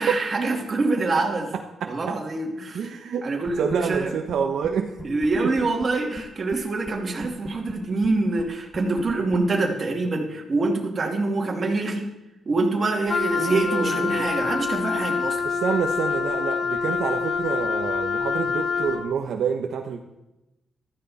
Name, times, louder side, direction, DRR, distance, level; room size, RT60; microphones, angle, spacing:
voice 1, 0.0-1.5 1.9-2.8 3.2-4.1 5.0-12.1 12.5-15.4, right 3 dB, 30° right, 0 dB, 2.6 m, -25 dB
voice 2, 2.7-3.3 3.6-5.0 5.4-5.5 13.4-14.3 15.4-20.0, right 7 dB, 70° right, 3 dB, 1.1 m, -28 dB
sound 1, 3.5-4.0 4.3-4.4 4.6-4.7 5.0-6.6 6.9-7.0 7.2-10.2, right 1 dB, 5° right, 1.5 m, -37 dB
Wind instrument woodwind instrument, 13.1-19.1, left 5 dB, 40° left, 1.5 m, -26 dB
15.0 x 13.5 x 4.3 m, 0.94 s
wide cardioid pair, 155°, 0 cm